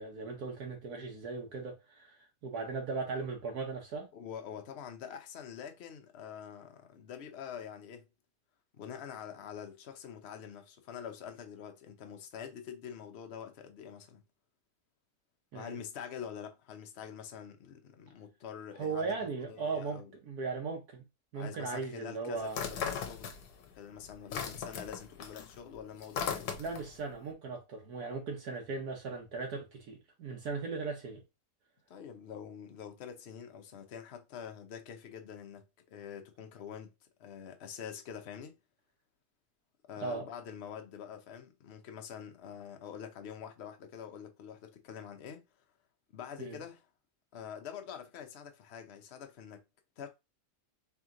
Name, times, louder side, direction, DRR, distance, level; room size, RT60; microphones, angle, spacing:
voice 1, 0.0-4.1 15.5-15.8 18.8-21.0 21.3-22.7 26.6-31.2 40.0-40.2 46.4-46.6, right 4 dB, 65° right, 1.3 m, -38 dB
voice 2, 4.1-8.0 8.7-14.2 15.5-20.1 21.3-23.3 23.7-26.5 31.9-36.9 37.2-38.5 39.9-45.4 46.1-46.9 47.3-49.6 50.0-50.1, left 8 dB, 55° left, 0.8 m, -45 dB
sound 1, 22.5-23.7 24.0-27.0, left 7 dB, 70° left, 1.2 m, -37 dB
3.5 x 3.0 x 3.7 m
omnidirectional pair, 1.8 m